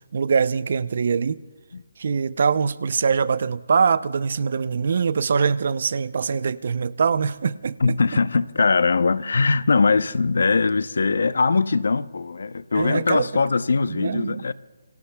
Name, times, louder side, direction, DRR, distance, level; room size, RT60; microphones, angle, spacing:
voice 1, 0.1-1.4 2.0-8.0 12.7-13.4 13.9-14.4, right 5 dB, 55° right, 0.6 m, -23 dB
voice 2, 7.8-14.5, left 4 dB, 70° left, 0.7 m, -21 dB
28.0 x 21.0 x 2.3 m
hypercardioid pair, 160°, 0 cm